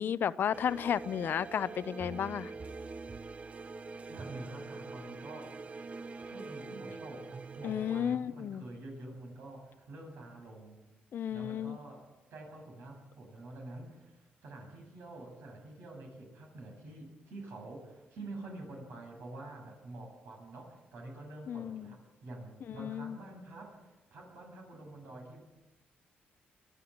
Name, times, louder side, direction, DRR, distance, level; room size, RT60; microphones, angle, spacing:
voice 1, 0.0-2.5 7.6-8.6 11.1-11.8 21.5-21.9 22.8-23.2, left 9 dB, 60° left, 0.6 m, -33 dB
sound 1, 0.5-8.2, right 4 dB, 35° right, 0.6 m, -44 dB
voice 2, 4.1-5.5 6.2-10.8 11.3-25.4, right 2 dB, 75° right, 7.9 m, -47 dB
23.0 x 13.0 x 8.7 m
cardioid pair, 90°, 4 cm